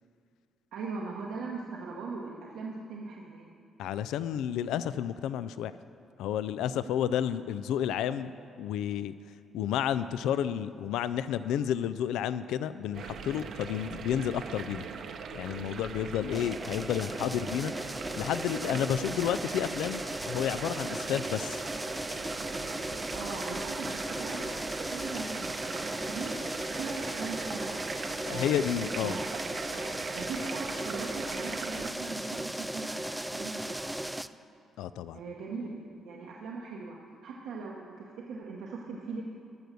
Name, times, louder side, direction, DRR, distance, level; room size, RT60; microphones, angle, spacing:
voice 1, 0.7-3.5 6.9-7.2 23.1-24.5 24.8-27.9 28.3-28.6 29.0-29.3 29.7-34.1 35.1-37.0 37.2-39.2, right 4 dB, 85° right, -3 dB, 1.1 m, -40 dB
voice 2, 3.8-5.7 6.2-8.3 8.6-9.1 9.5-14.9 15.3-17.7 18.2-20.0 20.3-21.6 28.3-29.2 34.8-35.2, left 10 dB, 90° left, 14 dB, 0.3 m, -31 dB
sound 1, 12.9-31.9, right 6 dB, 65° right, 0.8 m, -40 dB
sound 2, 16.3-34.3, right 1 dB, 5° right, 0.3 m, -37 dB
13.5 x 6.3 x 6.6 m, 2.4 s
cardioid pair, 90°, 0 cm